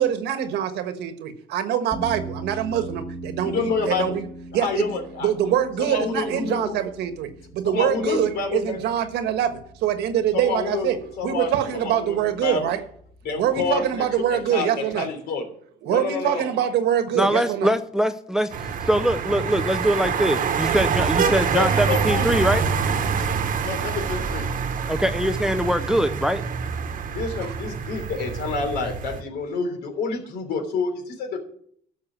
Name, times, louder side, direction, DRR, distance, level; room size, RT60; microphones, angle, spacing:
voice 1, 0.0-4.2 4.5-12.8 13.4-15.1 15.8-17.7 27.5-27.6, right 10 dB, 80° right, 9 dB, 1.5 m, -24 dB
sound 1, 1.9-14.4, right 2 dB, 20° left, 1.9 m, -41 dB
voice 2, 3.4-4.2 4.5-5.3 5.8-6.8 7.6-8.8 10.3-10.9 11.2-11.5 11.8-12.2 12.4-12.6 13.2-14.0 14.3-15.4 15.9-16.5 21.3-22.3 23.6-24.5 27.1-31.4, left 4 dB, 70° left, 5 dB, 3.3 m, -28 dB
voice 3, 17.2-18.6 18.9-22.6 24.9-26.4, equal, 5° right, 10 dB, 0.6 m, -22 dB
sound 2, 18.5-29.2, right 6 dB, 55° right, 1.2 m, -26 dB
12.5 x 6.5 x 7.4 m, 0.63 s
cardioid pair, 110°, 17 cm